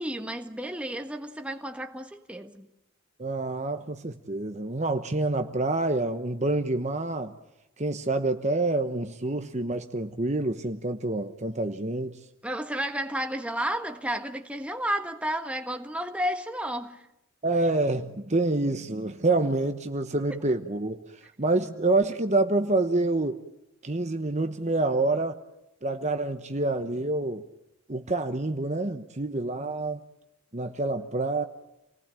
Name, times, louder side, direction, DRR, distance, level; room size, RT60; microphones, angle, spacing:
voice 1, 0.0-2.7 12.4-17.1, equal, 5° right, 1.5 m, -32 dB
voice 2, 3.2-7.3 7.8-12.2 17.4-21.0 21.4-23.4 23.8-25.4 25.8-27.4 27.9-30.0 30.5-31.4, right 2 dB, 30° right, 1.1 m, -27 dB
28.5 x 19.5 x 9.0 m
head